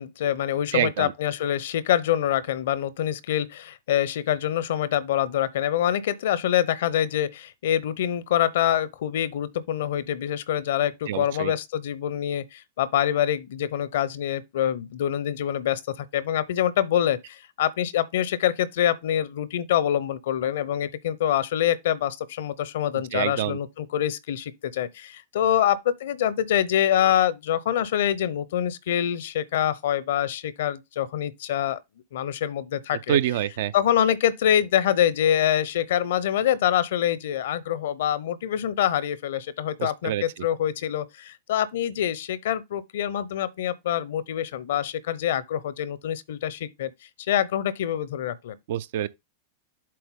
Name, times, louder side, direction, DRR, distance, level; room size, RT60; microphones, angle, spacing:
voice 1, 0.0-31.8 32.1-33.2 33.7-46.9 47.2-48.6, left 10 dB, 65° left, 0.7 m, -25 dB
voice 2, 0.7-1.1 11.1-11.5 23.1-23.6 33.1-33.7 39.8-40.2 48.7-49.1, right 11 dB, 65° right, 0.6 m, -26 dB
7.7 x 4.3 x 3.7 m
hypercardioid pair, 100°, 0 cm